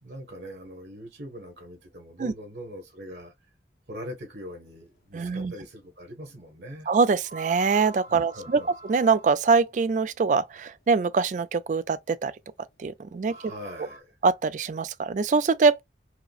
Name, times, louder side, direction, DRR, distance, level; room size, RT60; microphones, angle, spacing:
voice 1, 0.0-3.3 3.9-6.9 8.1-8.7 13.2-14.2, equal, 70° right, 1.3 m, -42 dB
voice 2, 5.1-5.5 6.9-8.6 8.9-12.3 12.8-13.4 14.2-15.8, right 4 dB, 45° right, 0.3 m, -23 dB
sound 1, 7.2-9.6 11.5-11.6 13.1-14.0, right 2 dB, 60° left, 0.8 m, -45 dB
4.8 x 2.0 x 2.3 m
head